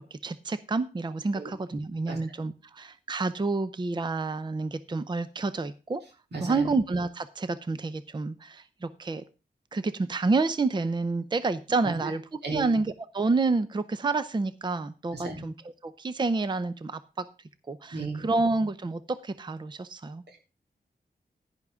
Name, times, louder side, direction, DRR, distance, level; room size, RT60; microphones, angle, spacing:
voice 1, 0.1-6.0 6.4-9.2 9.7-12.2 12.5-15.5 15.8-17.3 17.7-20.2, right 3 dB, 25° right, 13 dB, 0.6 m, -29 dB
voice 2, 6.3-6.7 11.8-12.2 12.4-12.8 15.1-15.4 17.9-18.3 20.3-20.4, right 3 dB, 85° right, 2 dB, 3.2 m, -35 dB
10.5 x 10.5 x 3.6 m, 0.30 s
wide cardioid pair, 110°, 17 cm